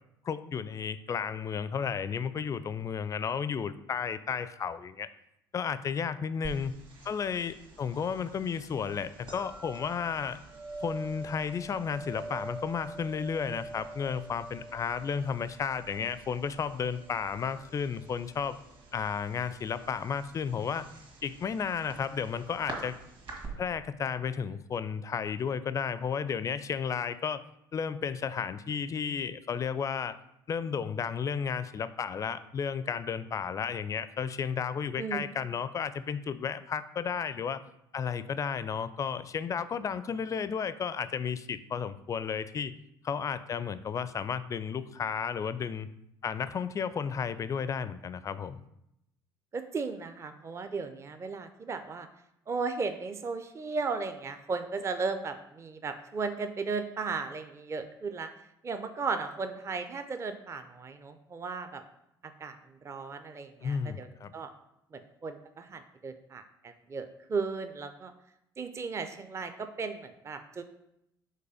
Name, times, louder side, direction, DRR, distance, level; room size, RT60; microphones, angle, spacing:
voice 1, 0.2-5.1 5.5-6.7 7.1-10.4 10.8-18.6 18.9-20.9 21.2-22.9 23.6-27.4 27.7-30.2 30.5-37.6 37.9-42.7 43.0-45.9 46.2-48.6 63.6-64.3, left 6 dB, 30° left, 14 dB, 0.4 m, -33 dB
sound 1, 6.4-23.5, right 2 dB, 45° right, 1.9 m, -46 dB
voice 2, 49.5-52.1 52.5-58.3 58.6-61.8 62.4-62.6 62.8-64.1 64.3-64.5 64.9-68.1 68.6-70.6, right 4 dB, 25° right, 9 dB, 0.5 m, -35 dB
5.4 x 3.9 x 5.0 m, 0.81 s
figure-of-eight pair, 55°, 12 cm